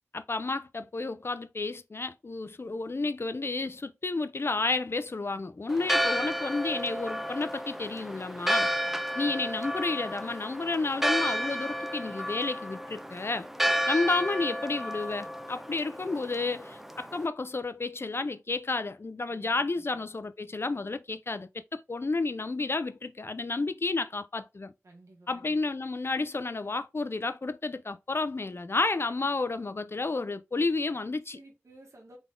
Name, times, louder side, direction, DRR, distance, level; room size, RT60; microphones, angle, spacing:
voice 1, 0.1-8.7 9.2-13.5 13.9-24.7 25.3-31.4, left 3 dB, 55° left, 0.5 m, -31 dB
Church bell, 5.7-17.3, equal, 5° right, 0.5 m, -32 dB
voice 2, 8.8-9.4 19.3-20.0 24.8-25.6 31.3-32.2, right 2 dB, 90° right, 1.6 m, -55 dB
3.9 x 3.6 x 3.7 m
wide cardioid pair, 55°, 5 cm